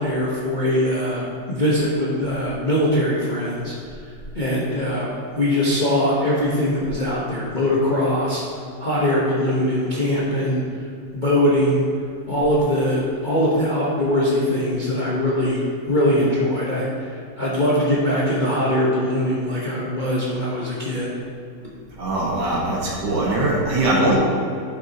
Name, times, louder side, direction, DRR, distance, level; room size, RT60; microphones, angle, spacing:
voice 1, 0.0-3.7 4.3-8.4 8.8-10.6 11.1-11.8 12.3-21.1, left 1 dB, 30° left, -7 dB, 1.1 m, -21 dB
voice 2, 22.0-24.1, right 2 dB, 80° right, -5 dB, 2.1 m, -21 dB
11.0 x 7.0 x 2.9 m, 2.5 s
omnidirectional pair, 1.9 m